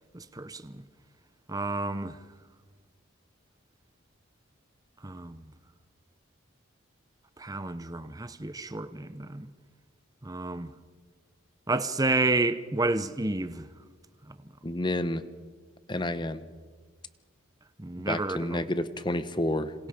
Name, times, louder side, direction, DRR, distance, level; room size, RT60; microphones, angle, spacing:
voice 1, 0.1-0.8 1.5-2.2 5.0-5.4 7.4-9.5 10.2-10.7 11.7-13.7 14.3-14.4 17.8-18.6, right 2 dB, 15° right, 0.7 m, -30 dB
voice 2, 14.6-15.2 15.9-16.4 18.0-19.7, left 1 dB, 20° left, 1.0 m, -30 dB
28.5 x 26.5 x 5.1 m
head